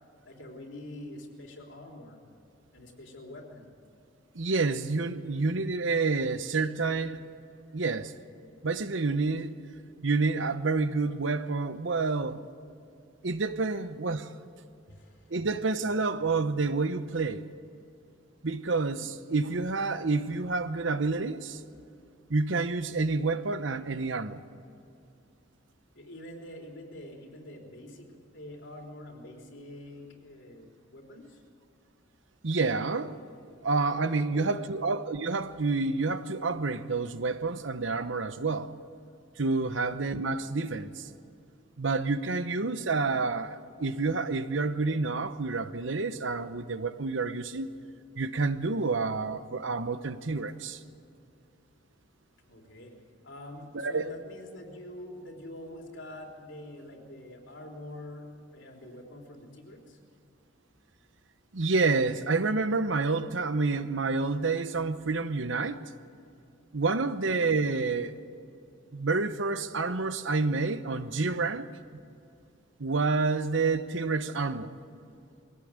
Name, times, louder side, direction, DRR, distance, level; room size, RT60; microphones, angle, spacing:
voice 1, 0.2-2.2 2.7-3.7 14.9-15.3 25.9-31.4 34.1-34.7 39.7-39.8 52.5-60.0 66.8-67.1, left 1 dB, 70° left, 3.7 m, -45 dB
voice 2, 4.3-7.2 7.7-8.1 8.6-9.5 10.0-12.5 13.2-14.3 15.3-17.5 18.4-21.6 22.3-24.4 32.4-33.1 33.6-38.7 39.4-41.1 41.8-47.7 48.2-50.8 53.7-54.1 61.5-65.8 66.7-68.2 68.9-71.7 72.8-74.8, right 3 dB, 75° right, 0.9 m, -29 dB
22.0 x 17.0 x 8.8 m
head